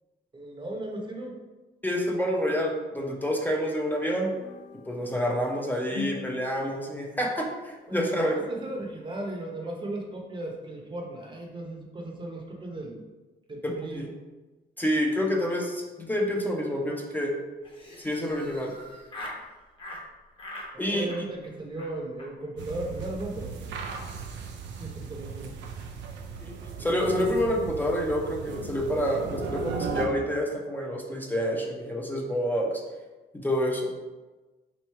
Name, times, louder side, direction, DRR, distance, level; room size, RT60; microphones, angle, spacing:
voice 1, 0.3-1.4 5.9-6.0 7.9-13.0 13.5-14.0 20.9-23.7 24.8-25.5, right 1 dB, 25° right, 0 dB, 0.8 m, -36 dB
voice 2, 1.8-4.3 4.9-8.4 13.6-14.1 14.8-17.3 18.0-18.7 20.8-21.1 26.4-32.7 33.3-33.9, equal, 10° left, -1 dB, 0.5 m, -28 dB
sound 1, 4.3-7.7, left 6 dB, 80° left, 0.5 m, -43 dB
Laughter, 17.6-19.4 19.8-20.0 20.4-20.7 21.0-21.5 21.8-21.9 22.2-22.3 22.6-22.7 22.9-23.1 23.3-23.7, left 1 dB, 30° left, 0.9 m, -42 dB
sound 2, 22.6-30.1, right 5 dB, 90° right, 0.5 m, -37 dB
3.1 x 2.6 x 4.4 m, 1.2 s
cardioid pair, 105°, 18 cm